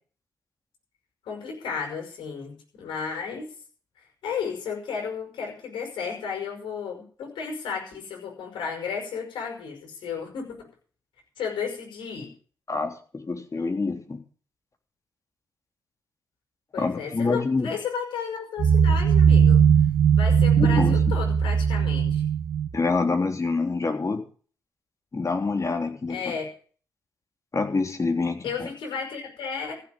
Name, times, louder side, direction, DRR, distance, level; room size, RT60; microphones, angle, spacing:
voice 1, 1.2-3.4 4.2-10.7 11.4-12.3 16.7-19.6 20.2-22.2 26.1-26.5 28.4-29.8, left 6 dB, 75° left, 2 dB, 5.6 m, -33 dB
voice 2, 12.7-14.2 16.8-17.7 20.6-21.0 22.7-24.2 25.1-26.3 27.5-28.7, left 3 dB, 40° left, 5 dB, 3.5 m, -26 dB
sound 1, 18.6-22.7, right 7 dB, 70° right, 1.2 m, -19 dB
15.0 x 7.5 x 7.8 m, 0.42 s
hypercardioid pair, 40°, 8 cm